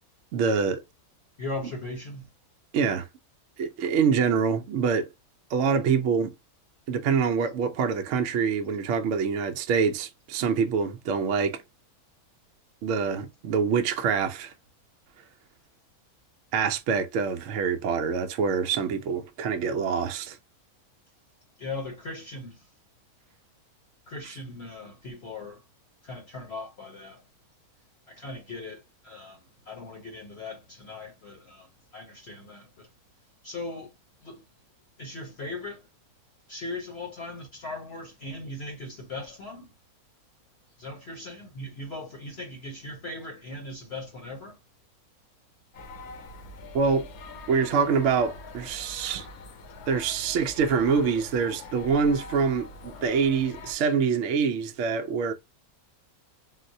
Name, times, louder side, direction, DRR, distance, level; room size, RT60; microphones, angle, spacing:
voice 1, 0.3-0.8 2.7-3.1 3.6-5.1 5.5-6.3 6.9-11.6 12.8-14.5 16.5-20.4 46.7-47.1 47.5-49.3 49.9-55.3, right 6 dB, 65° right, 0.8 m, -25 dB
voice 2, 1.4-2.3 21.6-22.7 24.1-25.6 26.0-27.2 28.1-32.9 33.4-33.9 34.2-34.4 35.0-35.9 36.5-39.7 40.8-44.6, left 2 dB, 55° left, 0.9 m, -39 dB
sound 1, 45.7-53.7, left 3 dB, 80° left, 1.2 m, -43 dB
4.0 x 2.1 x 2.6 m
omnidirectional pair, 1.5 m